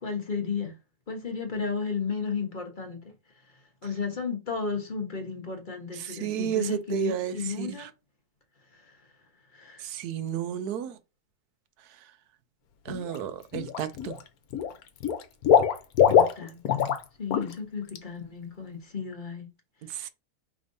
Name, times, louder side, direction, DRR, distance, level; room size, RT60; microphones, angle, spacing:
voice 1, 0.0-0.7 1.1-3.1 3.4-7.9 8.7-9.1 9.5-9.9 16.1-16.8 17.2-19.5, left 5 dB, 35° left, 1.2 m, -34 dB
voice 2, 5.9-7.9 9.8-11.0 12.8-14.2 19.9-20.1, right 10 dB, 85° right, 1.2 m, -32 dB
Water / Liquid, 12.9-13.2 13.5-14.2 14.5-17.0 17.3-17.5 17.9-18.0, left 8 dB, 75° left, 1.2 m, -23 dB
5.1 x 3.5 x 2.6 m
omnidirectional pair, 1.6 m